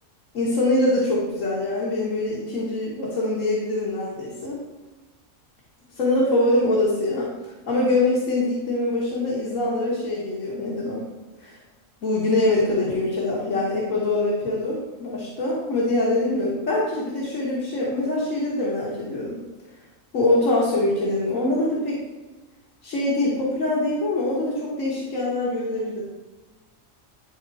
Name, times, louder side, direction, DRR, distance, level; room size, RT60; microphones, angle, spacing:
voice 1, 0.3-4.6 6.0-7.3 7.7-11.1 11.4-11.6 12.0-19.4 20.1-22.0 22.8-26.0, left 2 dB, 80° left, -6 dB, 1.8 m, -24 dB
10.5 x 3.7 x 4.1 m, 1.2 s
omnidirectional pair, 1.3 m